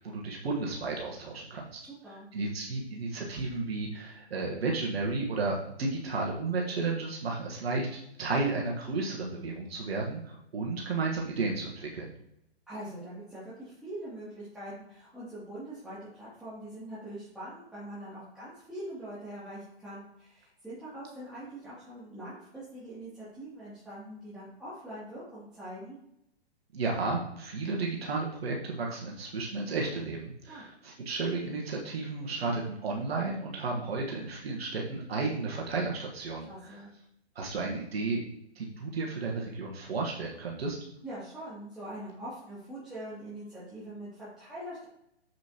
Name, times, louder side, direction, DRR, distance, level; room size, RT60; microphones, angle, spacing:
voice 1, 0.0-1.8 2.3-12.1 26.7-36.8 37.3-38.2 38.5-40.8, right 3 dB, 65° right, -2 dB, 1.5 m, -33 dB
voice 2, 1.9-2.3 12.7-26.0 30.5-30.6 36.5-36.9 41.0-44.8, right 1 dB, ahead, -13 dB, 2.6 m, -43 dB
7.1 x 6.0 x 2.9 m, 0.77 s
hypercardioid pair, 125°, 33 cm